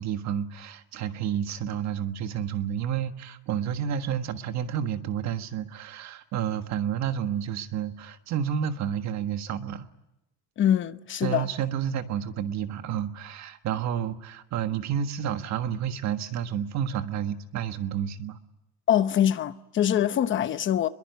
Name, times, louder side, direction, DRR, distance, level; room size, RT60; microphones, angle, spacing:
voice 1, 0.0-9.9 11.2-18.4, right 9 dB, 50° right, 1.5 m, -30 dB
voice 2, 10.6-11.5 18.9-20.9, left 10 dB, 35° left, 0.9 m, -24 dB
24.5 x 22.5 x 9.5 m
cardioid pair, 170°, 35 cm